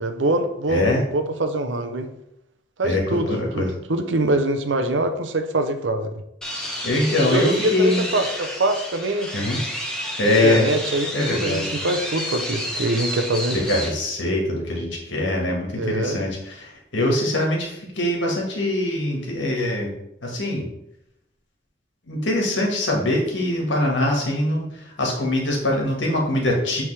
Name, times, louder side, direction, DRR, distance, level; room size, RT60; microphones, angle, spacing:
voice 1, 0.0-0.8 1.1-2.1 2.8-6.1 7.3-9.3 10.4-13.6 15.7-16.2, right 1 dB, 80° right, 7 dB, 0.7 m, -24 dB
voice 2, 0.7-1.0 2.8-3.7 6.8-8.0 9.3-9.6 10.2-10.6 11.1-11.7 13.5-19.9 20.2-20.7 22.1-24.7 25.0-26.8, left 1 dB, 80° left, -1 dB, 1.7 m, -23 dB
sound 1, 6.4-13.9, equal, 5° left, 1.0 m, -30 dB
8.1 x 3.6 x 3.3 m, 0.79 s
head